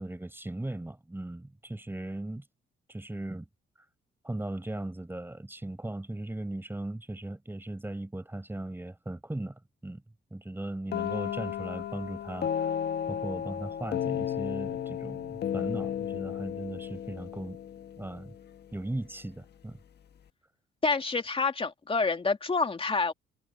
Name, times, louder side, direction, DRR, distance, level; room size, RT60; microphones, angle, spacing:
voice 1, 0.0-2.4 2.9-3.5 4.2-10.0 10.3-12.7 13.1-17.6 18.0-18.3 18.7-19.8, right 1 dB, 10° right, 5.4 m, -38 dB
sound 1, 10.9-18.6, left 9 dB, 55° left, 1.4 m, -34 dB
voice 2, 20.8-23.1, left 4 dB, 25° left, 2.5 m, -27 dB
cardioid pair, 90°, 20 cm